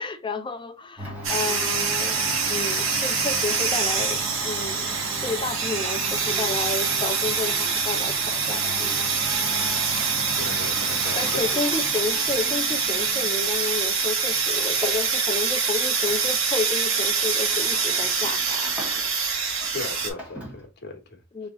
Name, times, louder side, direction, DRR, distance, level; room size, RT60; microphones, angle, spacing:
voice 1, 0.0-2.2 2.5-9.5 11.1-19.1 21.3-21.5, left 3 dB, 25° left, 0.4 m, -31 dB
Domestic sounds home sounds, 1.0-19.3 19.6-20.6, equal, 5° right, 1.5 m, -37 dB
sound 1, 1.2-20.1, right 5 dB, 85° right, 1.4 m, -25 dB
voice 2, 10.4-11.4 19.7-21.2, left 3 dB, 55° left, 1.2 m, -37 dB
3.5 x 3.2 x 3.8 m
head